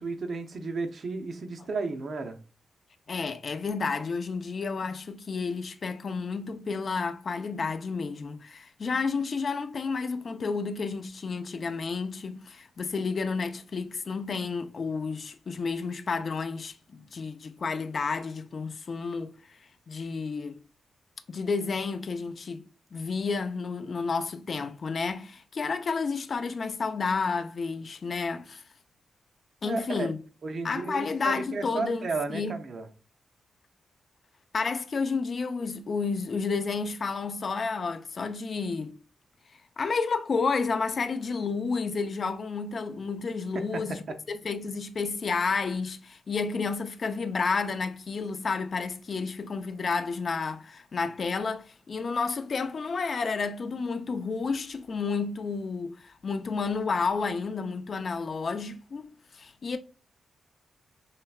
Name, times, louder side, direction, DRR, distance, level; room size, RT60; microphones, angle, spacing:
voice 1, 0.0-2.4 29.6-30.1 30.4-32.9 43.5-44.2, right 3 dB, 50° right, 0.7 m, -33 dB
voice 2, 3.1-19.6 19.9-20.6 21.3-22.6 22.9-28.6 29.6-30.2 30.6-32.5 34.5-38.9 39.8-59.8, left 4 dB, 45° left, 0.5 m, -31 dB
5.6 x 3.3 x 2.3 m
cardioid pair, 115°, 0 cm